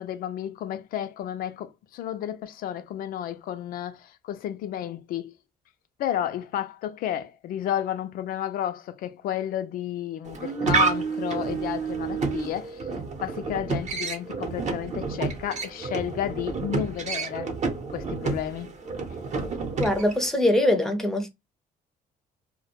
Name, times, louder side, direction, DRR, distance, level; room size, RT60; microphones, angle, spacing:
voice 1, 0.0-5.3 6.0-12.9 13.2-17.5 17.9-18.7, left 11 dB, 60° left, 0.4 m, -32 dB
sound 1, 10.3-20.3, right 4 dB, 45° right, 0.7 m, -29 dB
voice 2, 19.8-21.3, left 1 dB, 5° left, 0.5 m, -22 dB
2.2 x 2.1 x 2.9 m
cardioid pair, 145°, 17 cm